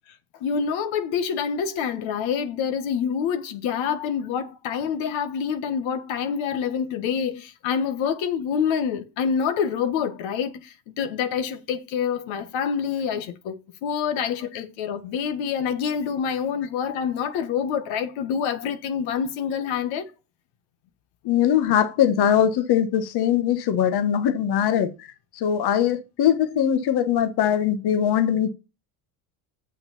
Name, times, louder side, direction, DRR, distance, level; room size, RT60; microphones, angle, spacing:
voice 1, 0.4-20.1, left 7 dB, 70° left, 1.4 m, -27 dB
voice 2, 21.2-24.9 25.4-28.5, left 9 dB, 50° left, 1.2 m, -21 dB
7.1 x 5.6 x 7.0 m
supercardioid pair, 95°, 49 cm